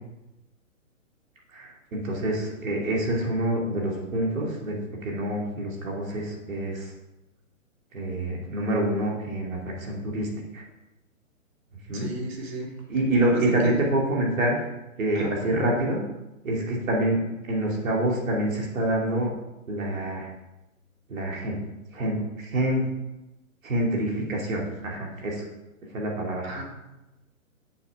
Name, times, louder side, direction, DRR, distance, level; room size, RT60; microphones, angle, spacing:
voice 1, 1.5-6.9 7.9-10.6 11.9-12.1 12.9-14.7 15.0-16.0 16.4-17.2 17.5-19.3 19.7-20.3 21.1-21.6 21.9-22.8 23.6-25.4 25.9-26.5, right 1 dB, 70° right, -1 dB, 2.8 m, -27 dB
voice 2, 11.9-12.7 13.2-13.9 15.1-15.4 26.4-26.6, right 2 dB, 45° right, -1 dB, 2.7 m, -33 dB
7.1 x 6.4 x 5.7 m, 0.99 s
hypercardioid pair, 145°, 42 cm